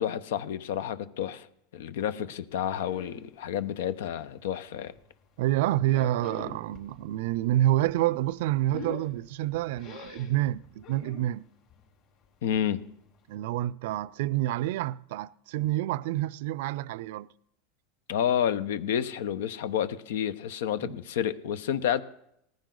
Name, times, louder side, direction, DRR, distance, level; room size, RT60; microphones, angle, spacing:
voice 1, 0.0-1.5 1.7-4.9 12.4-12.8 18.1-22.0, left 9 dB, 85° left, 0.9 m, -30 dB
sound 1, 2.8-3.3 3.6-4.4 4.8-5.0 5.7-6.9 7.2-11.3 11.7-11.9 12.2-12.3 12.5-12.6 13.1-13.2, left 4 dB, 50° left, 4.2 m, -44 dB
voice 2, 5.4-11.4 13.3-17.3 20.8-20.9, right 14 dB, 70° right, 0.4 m, -28 dB
18.5 x 14.5 x 3.9 m
supercardioid pair, 145°, 0 cm